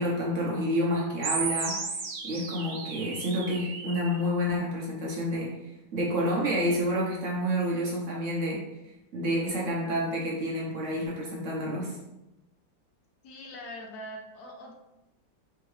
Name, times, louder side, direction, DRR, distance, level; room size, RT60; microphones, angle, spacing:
voice 1, 0.0-1.8 2.2-5.5 5.9-8.6 9.1-12.0, equal, 60° right, -3 dB, 0.9 m, -29 dB
sound 1, 1.2-4.2, right 4 dB, 90° right, 1.3 m, -34 dB
voice 2, 13.2-14.7, equal, 70° left, 0 dB, 1.1 m, -42 dB
3.7 x 2.7 x 2.9 m, 0.94 s
omnidirectional pair, 1.9 m